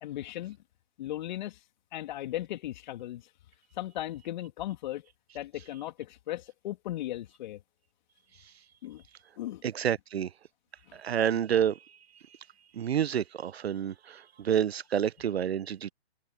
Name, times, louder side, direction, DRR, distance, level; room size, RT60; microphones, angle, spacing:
voice 1, 0.0-0.6 1.0-1.6 1.9-3.2 3.7-5.0 5.3-7.6 8.8-9.0 9.4-9.6 10.9-11.0, left 14 dB, 40° left, 2.8 m, -37 dB
voice 2, 9.6-10.3 10.9-11.8 12.7-15.9, right 9 dB, 65° right, 0.8 m, -29 dB
hypercardioid pair, 140°, 33 cm